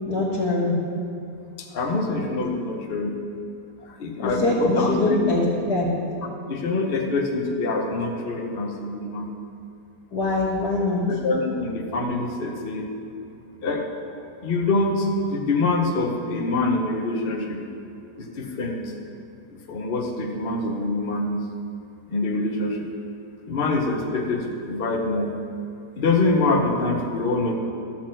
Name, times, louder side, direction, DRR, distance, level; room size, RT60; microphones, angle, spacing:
voice 1, 0.1-0.7 4.2-5.4 5.7-5.9 10.1-11.0, left 2 dB, 75° left, -8 dB, 2.0 m, -23 dB
voice 2, 1.6-3.1 3.8-5.5 6.5-9.3 11.1-12.9 13.6-13.8 14.4-17.6 18.2-18.8 19.5-21.4 22.1-22.9 23.5-25.3 26.0-27.6, left 3 dB, 40° left, 1 dB, 1.0 m, -25 dB
12.0 x 4.5 x 7.4 m, 2.5 s
omnidirectional pair, 1.8 m